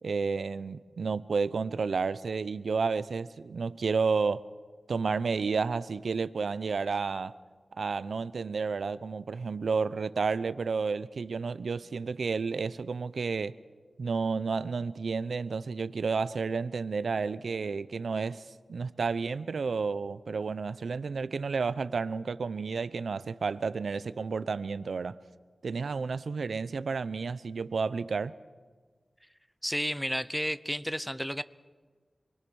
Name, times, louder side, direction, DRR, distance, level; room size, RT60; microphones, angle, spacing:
voice 1, 0.0-4.5 4.9-7.3 7.8-13.6 14.0-25.2 25.6-28.4, right 4 dB, 90° right, 0.6 m, -31 dB
voice 2, 29.6-31.4, equal, 5° left, 0.7 m, -32 dB
27.5 x 22.5 x 6.3 m
wide cardioid pair, 95°, 0 cm